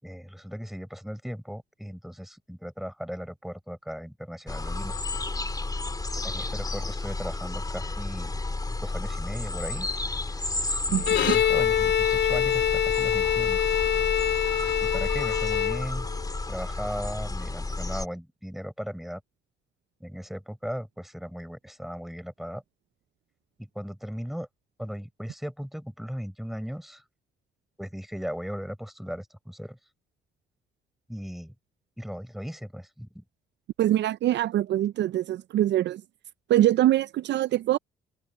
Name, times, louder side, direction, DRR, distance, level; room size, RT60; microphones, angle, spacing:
voice 1, 0.0-5.0 6.2-8.4 8.8-9.9 10.9-13.6 14.8-16.1 16.5-19.2 20.0-22.6 23.6-24.5 24.8-27.0 27.8-29.8 31.1-31.5 32.0-33.2, equal, ahead, 6.4 m, -37 dB
sound 1, 4.5-18.1, left 2 dB, 20° left, 3.8 m, -32 dB
voice 2, 10.9-11.4 33.8-36.0 36.5-37.8, right 13 dB, 65° right, 0.4 m, -24 dB
Bowed string instrument, 11.0-16.2, left 10 dB, 70° left, 2.5 m, -25 dB
open air
cardioid pair, 90°, 20 cm